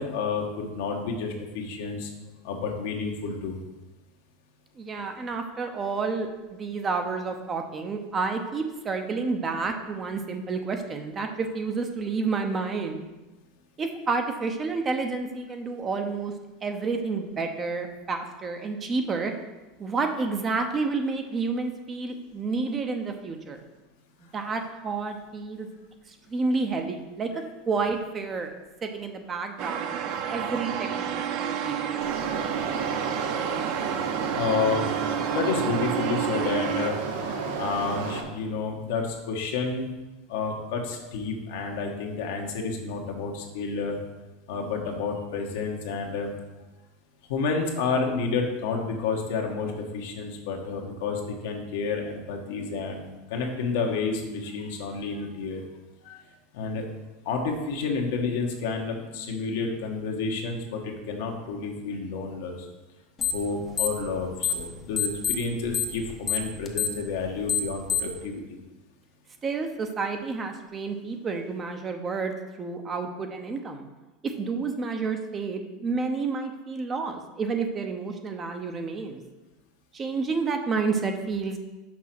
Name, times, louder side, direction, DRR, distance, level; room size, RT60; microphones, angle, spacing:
voice 1, 0.0-2.1 2.4-3.6 34.3-34.9 35.2-37.0 37.6-39.9 40.3-44.0 44.5-46.3 47.3-55.6 56.0-56.2 56.5-56.9 57.2-62.6 63.3-68.4, left 4 dB, 75° left, 1 dB, 1.4 m, -30 dB
voice 2, 4.8-13.0 13.8-16.3 16.6-19.3 19.8-23.6 24.2-25.7 26.3-28.5 28.8-32.0 69.4-72.3 72.6-73.9 74.2-79.2 79.9-81.6, right 4 dB, 25° right, 5 dB, 0.8 m, -30 dB
sound 1, 29.6-36.9, right 8 dB, 55° right, 0.6 m, -30 dB
sound 2, 32.0-38.2, right 5 dB, 75° right, 1.1 m, -32 dB
sound 3, 63.2-63.5 63.7-64.7 65.0-68.2, left 8 dB, 25° left, 0.8 m, -26 dB
6.1 x 4.9 x 6.0 m, 1.1 s
supercardioid pair, 125°, 0 cm